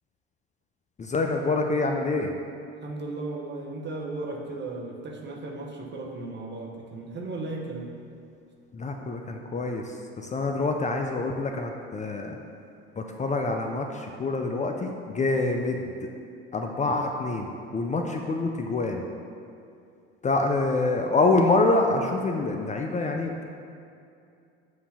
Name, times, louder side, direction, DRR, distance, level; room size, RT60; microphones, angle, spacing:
voice 1, 1.0-2.3 8.7-12.4 13.0-16.1 16.5-19.0 20.2-23.4, left 3 dB, 25° left, 3 dB, 0.5 m, -26 dB
voice 2, 2.8-7.9, right 2 dB, 35° right, 0 dB, 1.0 m, -35 dB
7.5 x 2.8 x 5.6 m, 2.5 s
hypercardioid pair, 75°, 29 cm